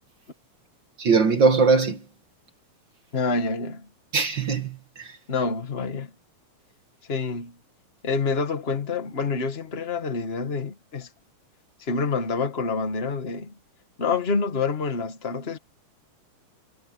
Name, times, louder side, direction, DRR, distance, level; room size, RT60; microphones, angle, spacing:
voice 1, 1.0-2.0 4.1-5.2, right 4 dB, 50° right, 1.5 m, -21 dB
voice 2, 3.1-3.9 5.3-6.1 7.1-7.6 8.0-11.1 11.8-13.5 14.0-15.6, left 4 dB, 25° left, 1.4 m, -27 dB
omnidirectional pair, 4.0 m